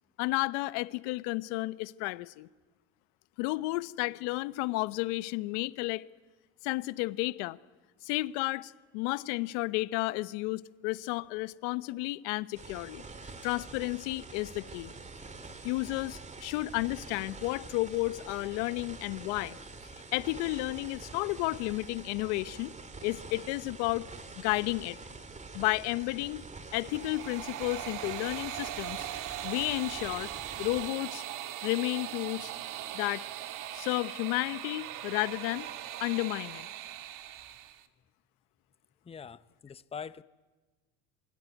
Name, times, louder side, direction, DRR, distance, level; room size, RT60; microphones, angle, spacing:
voice 1, 0.2-2.5 3.4-6.0 6.6-7.6 8.0-13.0 13.4-14.9 15.6-19.6 20.1-22.7 23.0-24.1 24.4-25.0 25.5-26.4 26.7-29.1 29.4-30.3 30.6-31.2 31.6-32.5 32.9-33.2 33.7-35.7 36.0-36.7, left 21 dB, 80° left, 1.0 m, -32 dB
sound 1, 12.5-30.9, right 3 dB, 20° right, 2.4 m, -46 dB
sound 2, 26.7-37.8, right 12 dB, 65° right, 2.0 m, -40 dB
voice 2, 39.0-40.2, left 6 dB, 15° left, 0.8 m, -43 dB
27.5 x 22.5 x 9.2 m
supercardioid pair, 100°, 34 cm